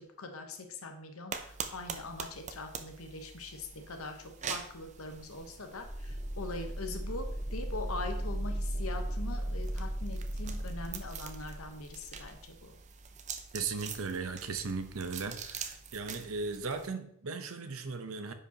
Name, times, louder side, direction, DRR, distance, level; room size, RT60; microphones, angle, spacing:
voice 1, 0.0-4.2 4.5-12.7, left 3 dB, 90° left, 5 dB, 1.0 m, -42 dB
sound 1, 1.3-16.9, right 6 dB, 35° right, 0.5 m, -45 dB
sound 2, 5.7-12.3, right 1 dB, 25° left, 0.9 m, -36 dB
voice 2, 13.5-18.3, right 4 dB, 85° right, 8 dB, 0.8 m, -37 dB
9.9 x 4.9 x 2.9 m, 0.69 s
head